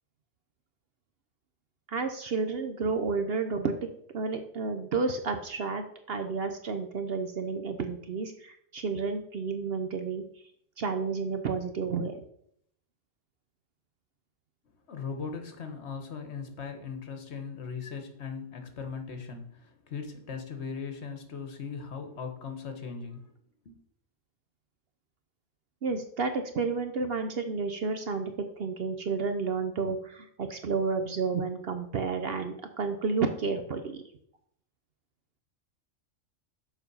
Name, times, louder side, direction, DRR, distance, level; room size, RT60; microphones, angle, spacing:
voice 1, 1.9-3.7 4.1-10.2 10.8-12.1 25.8-34.0, right 4 dB, 55° right, 7 dB, 0.8 m, -31 dB
voice 2, 14.9-23.3 23.6-23.8, left 5 dB, 60° left, 6 dB, 1.4 m, -39 dB
7.0 x 4.5 x 5.4 m, 0.68 s
omnidirectional pair, 1.3 m